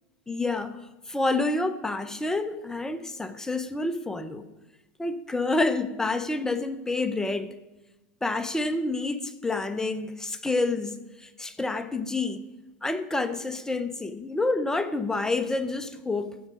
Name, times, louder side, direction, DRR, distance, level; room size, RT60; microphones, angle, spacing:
voice 1, 0.3-0.8 1.1-4.5 5.0-7.5 8.2-12.5 12.8-16.4, left 2 dB, 10° left, 0.7 m, -28 dB
15.0 x 5.1 x 6.2 m
hypercardioid pair, 115°, 7 cm